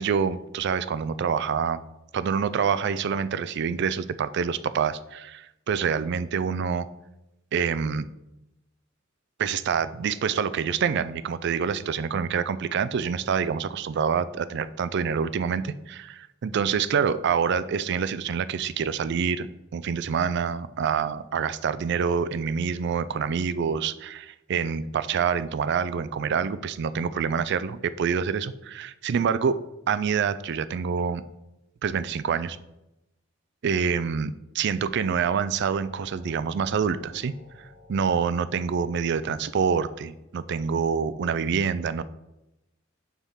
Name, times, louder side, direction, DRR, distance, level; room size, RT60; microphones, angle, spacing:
voice 1, 0.0-1.8 2.1-6.9 7.5-8.1 9.4-19.5 19.7-31.2 31.8-32.6 33.6-37.3 37.6-42.0, right 6 dB, 60° right, 15 dB, 0.4 m, -26 dB
sound 1, 35.0-40.4, left 2 dB, 30° left, 1.5 m, -53 dB
7.2 x 3.6 x 5.6 m, 0.91 s
head